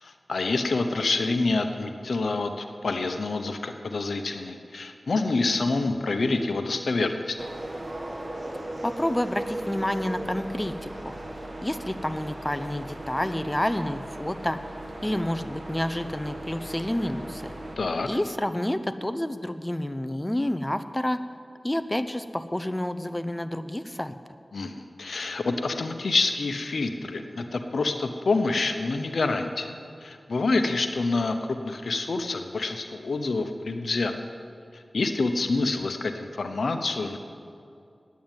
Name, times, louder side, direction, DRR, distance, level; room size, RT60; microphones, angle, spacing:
voice 1, 0.0-7.4 17.8-18.1 24.5-24.7 25.0-29.7 30.0-34.1 34.7-37.2, left 3 dB, 85° left, 7 dB, 0.8 m, -27 dB
sound 1, 7.4-17.8, right 1 dB, 40° right, 1.7 m, -37 dB
voice 2, 8.8-11.1 11.6-14.6 15.0-17.5 18.1-21.2 21.6-24.2, left 1 dB, 15° left, 10 dB, 0.6 m, -29 dB
9.3 x 9.3 x 8.9 m, 2.5 s
cardioid pair, 45°, 0 cm